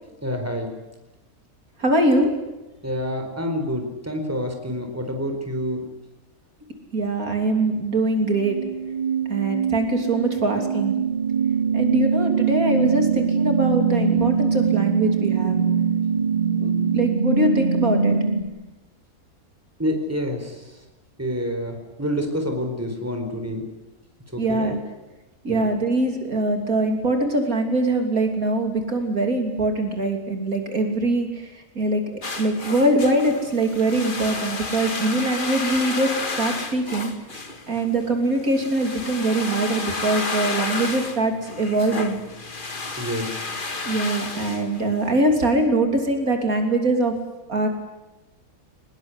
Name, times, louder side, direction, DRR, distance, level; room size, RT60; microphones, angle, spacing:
voice 1, 0.2-0.7 2.8-5.8 19.8-20.6 21.2-23.7 24.3-24.7 25.5-25.6 43.0-43.5, equal, 10° right, 5 dB, 4.4 m, -28 dB
voice 2, 1.8-2.3 6.9-8.6 9.3-10.9 11.7-15.6 16.6-18.2 24.4-24.8 25.4-31.4 31.8-37.1 37.7-42.2 43.9-47.1 47.5-47.7, right 2 dB, 70° right, 4 dB, 3.6 m, -22 dB
sound 1, 8.2-18.4, right 6 dB, 30° right, 2.6 m, -22 dB
sound 2, 32.2-45.2, left 3 dB, 35° left, 2.0 m, -32 dB
24.0 x 20.0 x 9.8 m, 1.0 s
omnidirectional pair, 1.5 m